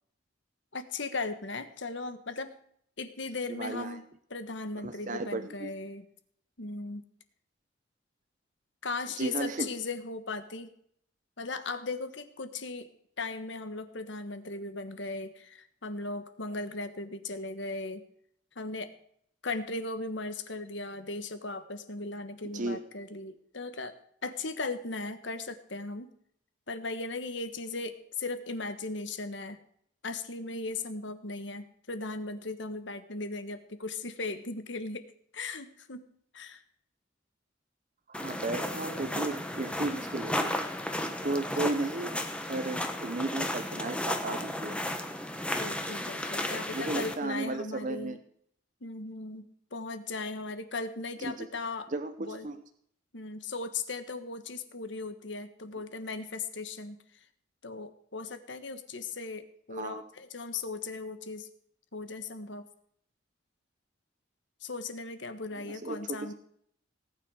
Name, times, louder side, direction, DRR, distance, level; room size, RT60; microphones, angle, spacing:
voice 1, 0.7-2.5 3.0-4.0 4.3-6.1 6.6-7.0 8.8-10.7 11.4-12.9 13.2-18.0 18.5-18.9 19.4-23.9 24.2-26.1 26.7-29.6 30.0-35.1 35.3-36.1 36.3-36.6 38.5-39.3 45.6-48.2 48.8-51.9 52.2-52.5 53.1-57.2 57.6-61.5 61.9-62.7 64.6-66.3, left 3 dB, 70° left, 10 dB, 1.4 m, -37 dB
voice 2, 3.5-4.0 4.8-5.7 9.2-9.7 22.5-22.8 38.1-40.5 41.2-42.2 42.4-44.8 46.7-48.2 51.3-51.5 51.9-52.6 59.7-60.0 65.6-66.3, right 2 dB, 40° right, 8 dB, 0.8 m, -34 dB
sound 1, 38.1-47.2, left 1 dB, 5° left, 1.1 m, -34 dB
18.5 x 9.3 x 4.9 m, 0.66 s
head